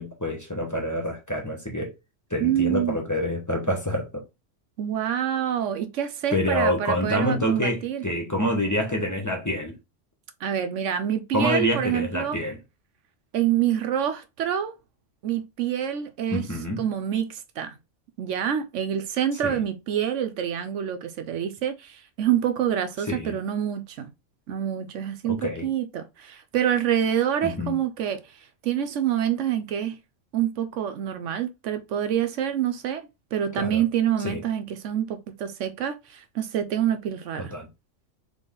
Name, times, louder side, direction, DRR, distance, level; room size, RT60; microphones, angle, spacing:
voice 1, 0.0-1.9 2.3-4.2 6.3-9.8 11.3-12.6 16.3-16.8 19.4-19.6 23.1-23.3 25.2-25.7 27.4-27.8 33.6-33.8 34.2-34.4 37.4-37.7, left 1 dB, 15° left, 1.1 m, -27 dB
voice 2, 2.4-3.0 4.8-8.0 10.4-12.4 13.3-14.7 15.2-16.5 16.8-17.8 18.2-24.1 24.5-28.2 28.6-30.0 30.3-37.5, right 10 dB, 80° right, 1.0 m, -26 dB
3.9 x 3.3 x 3.8 m
omnidirectional pair, 1.3 m